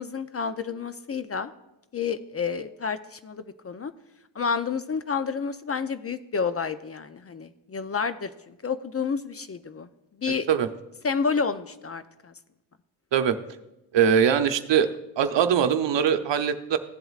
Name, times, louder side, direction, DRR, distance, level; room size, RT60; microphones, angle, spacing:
voice 1, 0.0-1.5 1.9-3.9 4.3-9.9 10.2-10.5 11.0-12.3, left 5 dB, 30° left, 11 dB, 0.5 m, -30 dB
voice 2, 13.9-14.9 15.2-16.8, right 8 dB, 65° right, 8 dB, 0.8 m, -21 dB
16.0 x 7.9 x 2.4 m, 0.93 s
cardioid pair, 75°, 47 cm